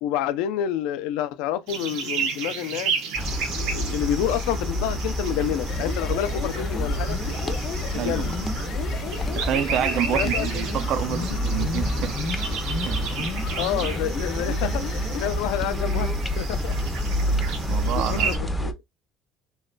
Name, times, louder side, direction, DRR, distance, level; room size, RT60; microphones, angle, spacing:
voice 1, 0.0-3.0 3.5-7.2 7.9-8.3 10.1-10.5 11.3-11.4 13.6-14.8 15.1-16.8 17.9-18.8, left 11 dB, 85° left, 0.4 m, -28 dB
sound 1, 1.7-18.4, right 6 dB, 85° right, 0.9 m, -33 dB
sound 2, 3.1-18.7, equal, 10° left, 0.4 m, -28 dB
sound 3, 5.6-15.4, left 5 dB, 60° left, 0.9 m, -34 dB
voice 2, 7.9-8.5 9.3-13.3 17.7-18.5, right 10 dB, 65° right, 0.3 m, -29 dB
3.0 x 2.2 x 3.7 m
cardioid pair, 125°, 0 cm